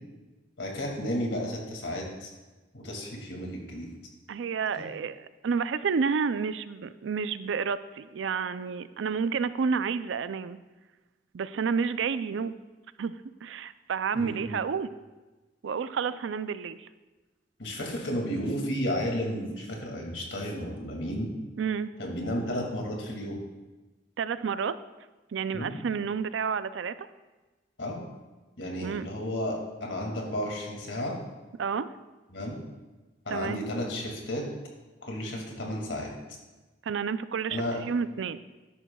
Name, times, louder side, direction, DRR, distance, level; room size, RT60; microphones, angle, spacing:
voice 1, 0.6-2.3 2.7-3.9 4.7-4.8 14.1-14.5 17.6-21.3 22.0-23.4 25.5-25.8 27.8-28.0 28.6-31.2 32.3-32.6 33.3-34.5 35.0-36.4 37.5-37.8, equal, 90° left, 0 dB, 2.2 m, -33 dB
voice 2, 4.3-10.6 11.3-12.6 13.0-14.9 15.6-16.9 21.6-21.9 24.2-24.7 25.3-26.9 28.8-29.1 31.6-31.9 33.3-33.6 36.8-38.4, right 6 dB, 85° right, 14 dB, 0.4 m, -30 dB
13.0 x 11.0 x 2.3 m, 1.2 s
head